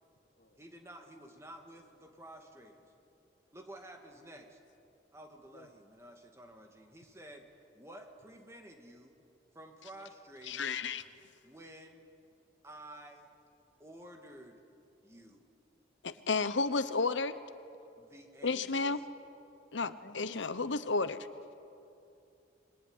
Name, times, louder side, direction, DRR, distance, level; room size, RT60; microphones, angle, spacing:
voice 1, 0.6-2.8 3.5-4.6 5.1-7.5 7.7-9.1 9.5-10.8 11.4-12.0 12.6-13.3 13.8-14.6 15.0-15.5 18.0-19.0 19.7-19.9, right 1 dB, 15° right, 3 dB, 2.2 m, -52 dB
voice 2, 10.5-11.0 16.0-17.4 18.4-19.0 19.7-21.2, left 4 dB, 75° left, 13 dB, 0.9 m, -32 dB
voice 3, 19.8-21.5, left 2 dB, 55° left, 9 dB, 1.2 m, -54 dB
26.0 x 22.0 x 9.8 m, 2.7 s
head